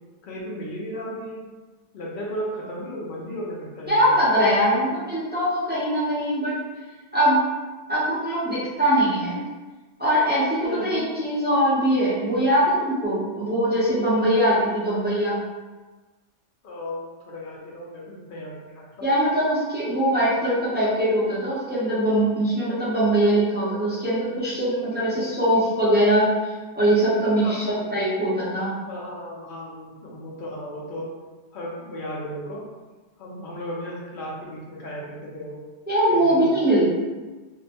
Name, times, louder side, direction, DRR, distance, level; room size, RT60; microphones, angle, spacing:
voice 1, 0.2-1.4 1.9-4.2 10.6-11.0 16.6-18.8 27.4-27.9 28.9-31.1 31.5-32.6 33.2-35.6 36.1-36.8, equal, 55° left, -4 dB, 0.6 m, -35 dB
voice 2, 3.9-6.6 7.1-7.5 7.9-9.4 10.0-15.4 19.0-28.7 35.9-36.9, right 1 dB, 15° right, -11 dB, 0.4 m, -22 dB
2.5 x 2.1 x 2.8 m, 1.3 s
omnidirectional pair, 1.4 m